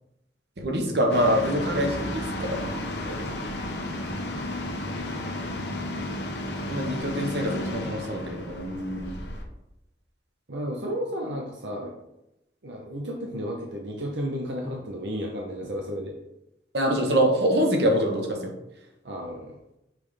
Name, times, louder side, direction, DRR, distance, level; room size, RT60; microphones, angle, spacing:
voice 1, 0.6-3.2 6.7-9.2 16.7-18.5, equal, 65° right, 2 dB, 1.2 m, -25 dB
sound 1, 1.1-9.4, left 1 dB, 70° left, 0.9 m, -33 dB
voice 2, 10.5-11.9 12.6-16.2 19.0-19.6, equal, 80° right, 0 dB, 0.8 m, -33 dB
6.0 x 5.1 x 3.4 m, 0.89 s
head